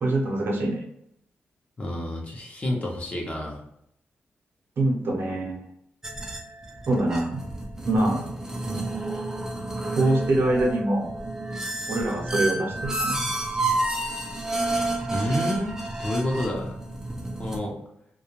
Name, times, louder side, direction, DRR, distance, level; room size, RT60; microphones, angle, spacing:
voice 1, 0.0-0.8 4.8-5.7 6.9-7.4 7.9-8.2 9.9-11.1 11.9-13.2, right 2 dB, 70° right, -1 dB, 0.7 m, -24 dB
voice 2, 1.8-3.6 15.1-16.7 17.4-17.8, left 1 dB, 35° left, -1 dB, 0.7 m, -29 dB
sound 1, 6.0-17.6, right 2 dB, 15° right, 0.5 m, -30 dB
2.3 x 2.1 x 3.0 m, 0.74 s
cardioid pair, 100°, 4 cm